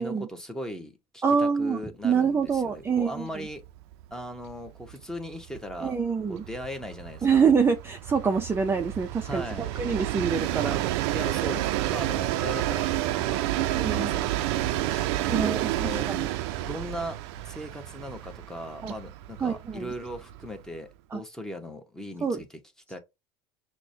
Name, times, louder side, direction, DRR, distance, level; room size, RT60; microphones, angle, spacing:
voice 1, 0.0-3.6 4.1-6.0 6.3-7.4 9.3-9.8 11.1-16.1 16.7-17.2 17.4-22.5 22.9-23.0, equal, 5° left, 0.9 m, -38 dB
voice 2, 1.2-3.5 5.8-6.4 7.2-10.8 13.7-14.1 15.3-15.6 16.1-16.3 18.8-18.9 19.4-19.9 21.1-21.2 22.2-22.4, right 6 dB, 15° right, 0.5 m, -26 dB
Train, 2.5-2.6 3.0-3.1 3.4-20.8, right 14 dB, 75° right, 0.4 m, -30 dB
5.9 x 2.1 x 2.6 m
supercardioid pair, 110°, 14 cm